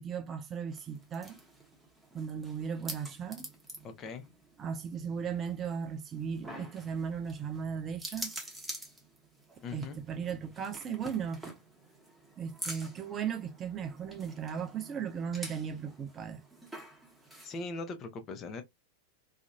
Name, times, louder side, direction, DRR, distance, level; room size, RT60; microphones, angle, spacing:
voice 1, 0.0-1.4 2.1-3.5 4.6-8.3 9.7-11.4 12.4-16.4, right 7 dB, 25° right, 0.4 m, -36 dB
sound 1, 0.7-17.7, right 1 dB, 5° right, 1.0 m, -47 dB
voice 2, 3.8-4.3 9.6-10.0 17.4-18.6, left 3 dB, 30° left, 0.6 m, -40 dB
2.8 x 2.5 x 2.2 m
figure-of-eight pair, 90°, 0 cm